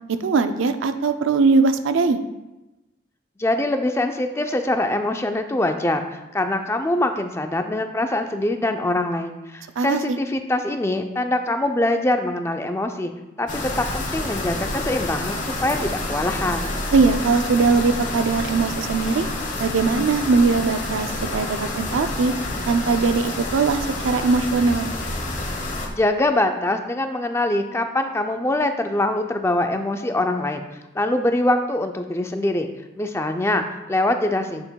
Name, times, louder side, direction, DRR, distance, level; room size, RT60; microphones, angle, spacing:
voice 1, 0.1-2.2 9.8-10.2 16.9-19.3 19.6-22.3 22.7-24.9, right 4 dB, 75° right, 10 dB, 0.4 m, -20 dB
voice 2, 3.4-13.1 13.4-16.7 26.0-30.7 30.9-32.7 33.0-34.7, left 1 dB, 15° left, 6 dB, 0.4 m, -23 dB
sound 1, 13.5-25.9, left 2 dB, 40° left, 1.1 m, -28 dB
7.7 x 6.8 x 2.3 m, 1.0 s
head